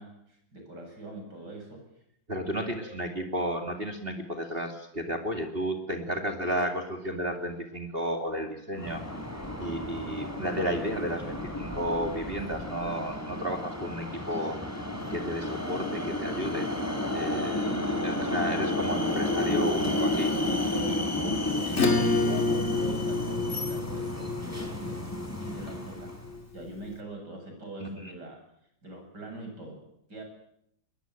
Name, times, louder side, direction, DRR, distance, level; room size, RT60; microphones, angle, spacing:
voice 1, 0.0-1.8 2.5-2.9 17.5-18.1 21.4-25.1 25.4-26.1 26.5-28.4 28.8-30.2, right 1 dB, 65° right, 3 dB, 8.2 m, -43 dB
voice 2, 2.3-9.0 9.6-14.6 15.1-16.7 17.1-20.3 27.8-28.1, equal, 30° right, 4 dB, 2.5 m, -32 dB
sound 1, 8.8-26.2, left 1 dB, 10° left, 3.9 m, -32 dB
Acoustic guitar / Strum, 21.7-26.7, left 3 dB, 35° left, 3.0 m, -29 dB
22.0 x 20.5 x 9.0 m, 0.74 s
omnidirectional pair, 2.0 m